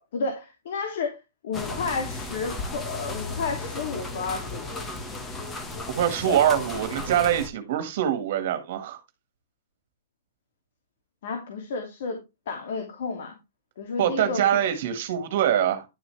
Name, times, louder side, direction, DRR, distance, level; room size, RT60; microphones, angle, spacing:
voice 1, 0.1-1.2 1.4-4.8 6.2-6.4 11.2-12.2 12.5-13.3 13.8-14.6, left 4 dB, 60° left, 2.8 m, -31 dB
sound 1, 1.5-7.5, left 2 dB, 15° left, 1.6 m, -35 dB
voice 2, 6.0-9.0 14.0-15.9, right 10 dB, 55° right, 2.0 m, -24 dB
11.5 x 7.0 x 3.4 m
hypercardioid pair, 160°, 0 cm